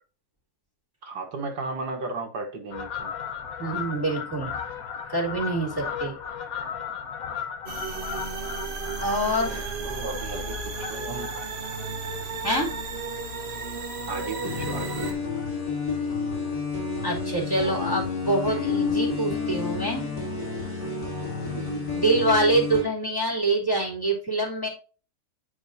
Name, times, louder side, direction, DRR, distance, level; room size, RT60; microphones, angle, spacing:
voice 1, 1.0-3.1 9.5-11.4 14.1-15.2 21.4-21.9, right 3 dB, 70° right, 1.8 m, -35 dB
Fowl, 2.7-13.5 14.0-14.2 14.9-15.5 15.8-15.9 16.1-16.2 16.5-16.6 16.9-17.1 18.1-18.2 18.7-18.8, left 7 dB, 60° left, 1.3 m, -37 dB
voice 2, 3.6-4.5 5.1-6.1 6.5-6.6 9.0-9.7 12.4-12.7 17.0-20.0 21.9-24.7, right 2 dB, 10° left, 2.8 m, -25 dB
sound 1, 7.7-15.1, right 3 dB, 40° right, 1.3 m, -33 dB
sound 2, 14.4-22.8, left 5 dB, 85° left, 3.3 m, -30 dB
9.3 x 5.0 x 2.7 m
omnidirectional pair, 1.8 m